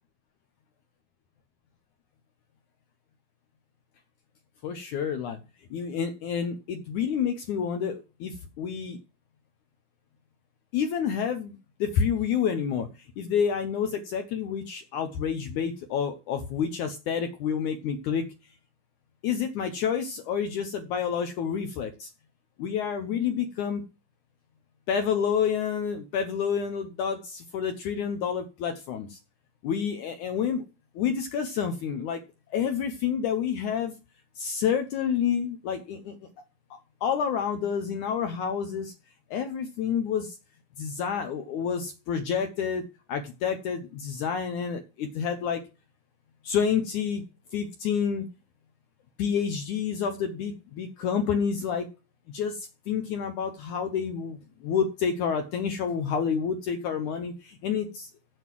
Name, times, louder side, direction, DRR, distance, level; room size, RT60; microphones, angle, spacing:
voice 1, 4.6-5.4 5.7-9.0 10.7-12.9 13.2-18.3 19.2-22.1 22.6-23.8 24.9-29.2 29.6-30.6 31.0-32.2 32.5-33.9 34.4-36.2 36.7-38.9 39.3-40.4 40.8-45.6 46.4-47.2 47.5-48.3 49.2-51.9 52.3-58.1, left 7 dB, 75° left, 7 dB, 1.9 m, -29 dB
8.2 x 7.4 x 7.5 m, 0.31 s
omnidirectional pair, 4.4 m